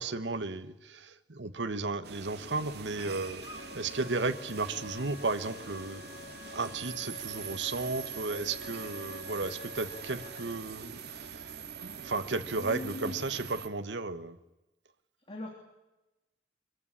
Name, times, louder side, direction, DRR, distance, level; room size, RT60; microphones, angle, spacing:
voice 1, 0.0-6.1 6.5-11.6 11.8-14.4, right 3 dB, 90° right, 10 dB, 1.3 m, -34 dB
sound 1, 2.0-13.7, right 7 dB, 65° right, 2.0 m, -43 dB
sound 2, 3.4-10.6, left 5 dB, 65° left, 2.0 m, -48 dB
voice 2, 12.5-13.2 15.3-15.5, left 1 dB, 30° left, 1 dB, 3.2 m, -40 dB
23.5 x 15.0 x 9.9 m, 0.98 s
head